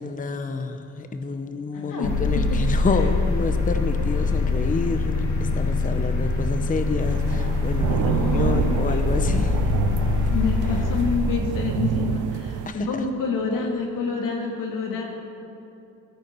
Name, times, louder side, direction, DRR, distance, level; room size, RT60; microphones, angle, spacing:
voice 1, 0.0-9.6 12.7-12.9, left 4 dB, 25° left, 8 dB, 0.7 m, -29 dB
voice 2, 1.7-2.6 8.0-9.3 10.3-15.0, left 4 dB, 85° left, 1 dB, 2.3 m, -28 dB
sound 1, 2.0-11.2, left 3 dB, 65° left, 1.9 m, -23 dB
sound 2, 7.0-12.7, right 11 dB, 70° right, 0.5 m, -28 dB
16.0 x 13.5 x 4.5 m, 2.8 s
cardioid pair, 110°, 32 cm